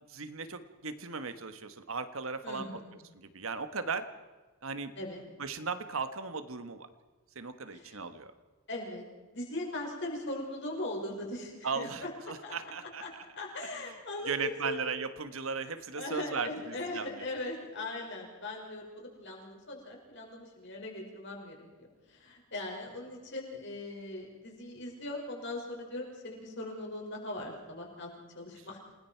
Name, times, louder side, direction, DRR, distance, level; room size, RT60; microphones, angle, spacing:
voice 1, 0.1-2.8 3.1-4.1 4.6-4.9 5.4-6.9 7.3-8.3 11.6-13.0 14.3-17.3, right 5 dB, 65° right, 10 dB, 1.4 m, -37 dB
voice 2, 2.4-3.0 5.0-5.2 7.7-8.0 8.7-9.0 9.3-12.1 12.4-12.6 13.0-13.1 13.4-14.8 15.9-28.8, left 1 dB, 55° left, 0 dB, 5.7 m, -40 dB
28.0 x 20.0 x 4.6 m, 1.2 s
head